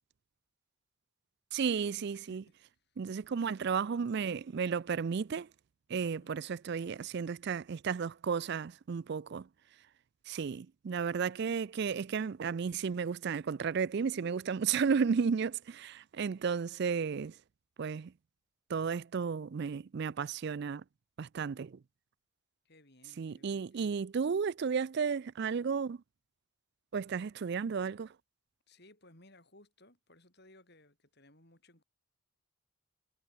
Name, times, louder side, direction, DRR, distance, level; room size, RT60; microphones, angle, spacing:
voice 1, 1.5-2.4 3.0-5.5 5.9-9.5 10.3-17.3 17.8-18.1 18.7-20.8 21.2-21.8 23.2-26.0 26.9-28.1, right 6 dB, 50° right, 0.4 m, -33 dB
voice 2, 2.1-3.0 5.9-6.4 22.6-24.0 28.7-31.8, left 1 dB, 50° left, 7.6 m, -62 dB
head